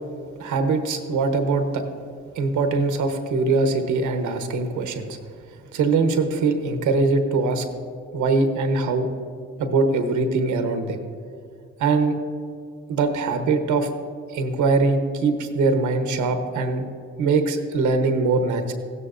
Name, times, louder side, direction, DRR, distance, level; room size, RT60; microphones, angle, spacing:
voice 1, 0.4-1.8 2.3-5.1 5.7-7.6 8.1-9.1 9.6-11.0 11.8-12.1 12.9-13.9 14.3-16.9 17.2-18.7, right 3 dB, 80° right, 6 dB, 1.0 m, -22 dB
15.5 x 12.0 x 2.5 m, 2.3 s
cardioid pair, 90°, 30 cm